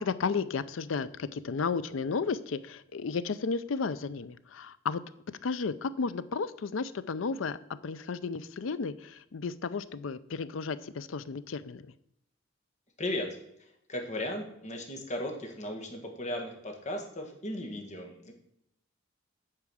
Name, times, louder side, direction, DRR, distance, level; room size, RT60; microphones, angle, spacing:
voice 1, 0.0-5.0 5.4-7.6 7.8-11.9, left 5 dB, 80° left, 15 dB, 0.5 m, -33 dB
voice 2, 13.0-13.3 13.6-18.3, left 1 dB, 40° left, 3 dB, 1.8 m, -36 dB
8.7 x 4.8 x 6.2 m, 0.77 s
head